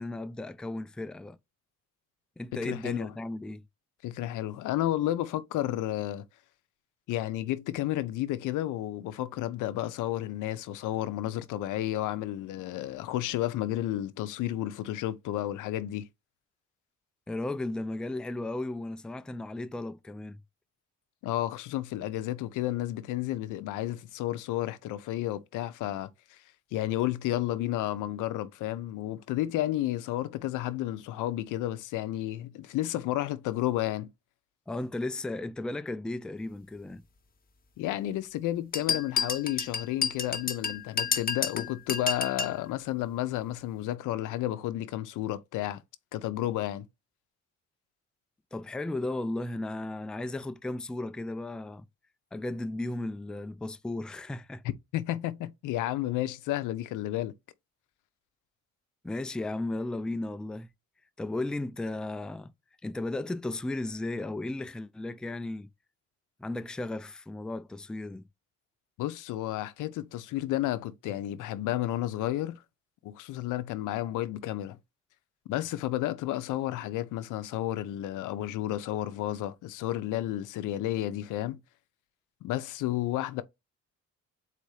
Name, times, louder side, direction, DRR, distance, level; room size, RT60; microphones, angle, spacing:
voice 1, 0.0-1.4 2.4-3.6 17.3-20.4 34.7-37.0 48.5-51.9 52.3-54.6 59.0-60.7 61.2-62.5 62.8-65.7 66.4-68.2, left 2 dB, 5° left, 0.3 m, -35 dB
voice 2, 2.6-3.1 4.0-6.2 7.1-16.1 21.2-26.4 26.7-34.1 37.8-45.8 46.1-46.9 54.9-57.3 69.0-72.6 73.0-74.8 75.5-81.6 82.4-83.4, left 14 dB, 90° left, 0.6 m, -32 dB
sound 1, 38.7-42.6, left 5 dB, 30° left, 0.8 m, -30 dB
4.1 x 2.7 x 4.7 m
cardioid pair, 90°, 30 cm